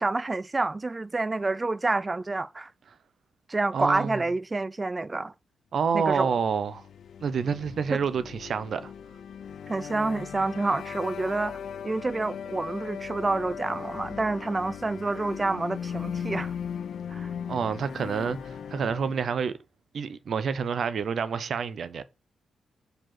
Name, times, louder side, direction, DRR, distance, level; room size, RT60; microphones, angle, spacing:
voice 1, 0.0-2.7 3.5-5.3 5.9-6.3 7.9-8.0 9.7-11.6 11.8-16.5 17.1-17.3, right 3 dB, 20° right, 0.3 m, -28 dB
voice 2, 3.7-4.2 5.7-6.8 7.2-8.9 17.5-19.5 19.9-22.0, right 6 dB, 55° right, 0.6 m, -28 dB
sound 1, 6.5-19.5, left 7 dB, 60° left, 0.5 m, -38 dB
5.0 x 4.7 x 5.9 m
wide cardioid pair, 135°, 0 cm